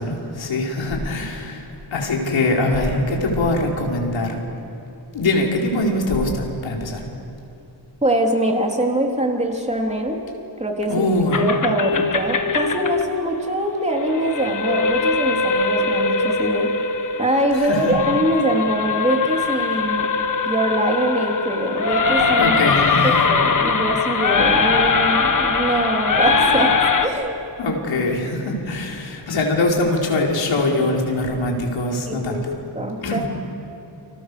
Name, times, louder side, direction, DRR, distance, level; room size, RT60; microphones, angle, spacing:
voice 1, 0.0-4.4 5.1-7.0 10.9-11.4 17.5-17.9 22.4-23.2 27.6-32.5 33.0-33.2, left 2 dB, 85° left, -1 dB, 4.9 m, -22 dB
voice 2, 8.0-10.2 10.6-16.7 17.2-20.1 20.4-22.5 23.0-26.8 27.0-27.4 32.1-32.4 32.7-33.3, right 1 dB, 15° right, 1 dB, 3.3 m, -23 dB
sound 1, 11.3-27.1, left 4 dB, 45° left, 1.7 m, -21 dB
29.5 x 27.0 x 6.9 m, 2.8 s
wide cardioid pair, 140°, 44 cm